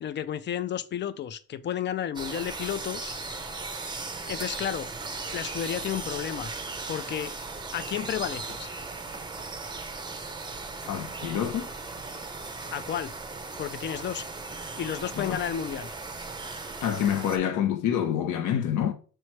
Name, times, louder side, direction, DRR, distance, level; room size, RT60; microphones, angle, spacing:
voice 1, 0.0-3.2 4.2-4.9 5.3-6.5 6.9-7.3 7.7-8.7 12.7-13.1 13.6-14.3 14.8-15.9, left 9 dB, 40° left, 0.4 m, -32 dB
sound 1, 2.2-17.4, right 3 dB, 15° right, 0.6 m, -37 dB
voice 2, 10.9-11.7 15.1-15.4 16.8-18.9, left 9 dB, 85° left, 0.7 m, -27 dB
3.1 x 3.1 x 4.5 m
cardioid pair, 90°, 30 cm